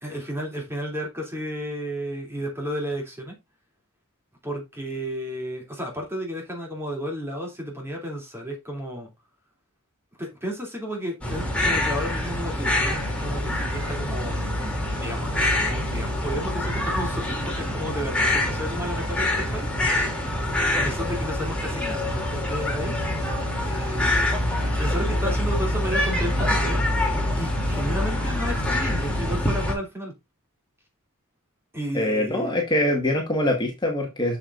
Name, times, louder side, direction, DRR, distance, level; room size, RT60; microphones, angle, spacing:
voice 1, 0.0-3.4 4.4-9.1 10.2-14.4 14.9-19.7 20.7-22.9 23.6-24.2 24.8-26.8 27.3-30.1 31.7-32.6, equal, 10° right, 2.9 m, -32 dB
sound 1, 11.2-29.7, left 1 dB, 5° left, 2.8 m, -25 dB
voice 2, 31.9-34.4, left 1 dB, 20° left, 1.6 m, -23 dB
7.1 x 7.1 x 2.5 m
head